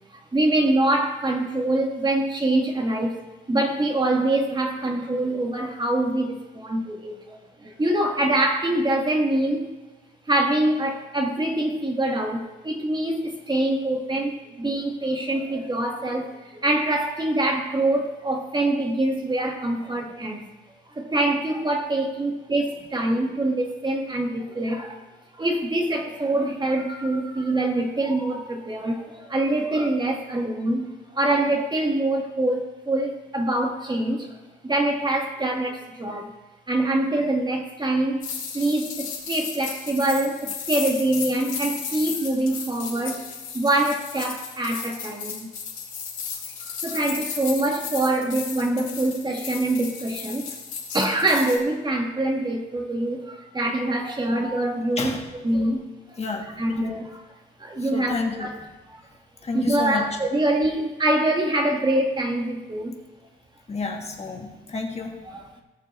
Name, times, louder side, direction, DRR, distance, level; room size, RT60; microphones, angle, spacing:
voice 1, 0.1-3.2 3.5-9.7 10.3-20.5 20.9-25.0 25.4-34.4 34.6-36.3 36.7-38.3 38.5-43.3 43.5-45.5 46.6-50.6 50.9-55.2 55.4-56.2 56.6-57.2 57.6-58.5 58.9-59.0 59.5-63.0 65.3-65.6, right 1 dB, 20° right, 2 dB, 1.7 m, -24 dB
sound 1, 38.2-51.6, left 6 dB, 80° left, 3.3 m, -34 dB
voice 2, 56.2-56.5 57.8-58.5 59.4-60.0 63.7-65.2, left 4 dB, 30° left, 2 dB, 1.5 m, -30 dB
18.5 x 6.7 x 3.2 m, 1.1 s
cardioid pair, 90°, 20 cm